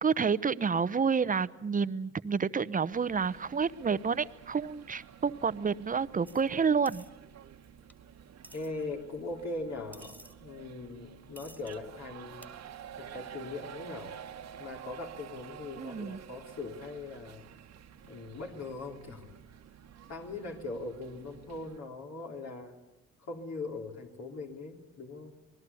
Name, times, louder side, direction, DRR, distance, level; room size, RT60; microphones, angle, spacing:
voice 1, 0.0-7.0 15.8-16.2, right 6 dB, 25° right, 16 dB, 0.8 m, -29 dB
sound 1, 2.9-21.8, right 9 dB, 60° right, 1.4 m, -50 dB
sound 2, 6.3-6.4 6.9-7.1 7.9-8.0 8.4-8.7 9.9-10.3 11.4-11.8 12.4-12.5, equal, 5° left, 2.3 m, -52 dB
voice 2, 8.5-12.5 13.0-14.1 14.6-17.5 18.0-19.3 20.1-22.8 23.3-25.3, left 3 dB, 60° left, 1 dB, 3.5 m, -40 dB
26.0 x 20.0 x 7.1 m, 1.0 s
cardioid pair, 90°, 30 cm